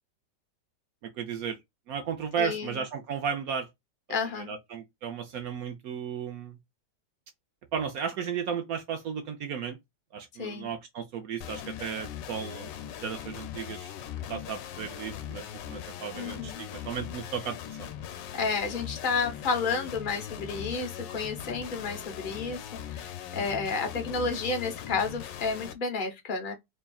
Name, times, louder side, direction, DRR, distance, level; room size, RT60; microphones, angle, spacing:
voice 1, 1.0-1.6 1.9-3.7 4.1-6.6 7.7-9.8 10.1-12.7 13.0-13.9 14.3-17.9 23.3-23.4, right 7 dB, 70° right, 0.9 m, -34 dB
voice 2, 2.4-2.8 4.1-4.5 10.4-10.7 16.1-16.6 18.3-26.5, left 4 dB, 45° left, 0.6 m, -31 dB
sound 1, 11.4-25.7, left 10 dB, 75° left, 1.2 m, -40 dB
4.2 x 3.4 x 2.3 m
omnidirectional pair, 2.0 m